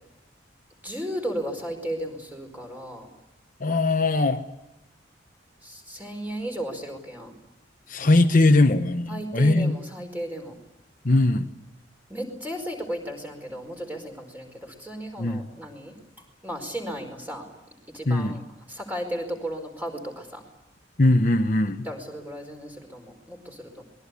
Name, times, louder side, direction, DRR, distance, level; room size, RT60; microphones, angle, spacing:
voice 1, 0.8-3.1 5.6-7.3 9.1-10.5 12.1-17.5 17.9-18.4 18.7-20.4 21.8-23.8, equal, 10° right, 3 dB, 4.9 m, -35 dB
voice 2, 3.6-4.5 7.9-9.8 11.0-11.5 15.2-15.4 18.1-18.4 21.0-21.9, left 2 dB, 45° left, 6 dB, 1.0 m, -20 dB
26.5 x 21.5 x 8.4 m, 0.89 s
head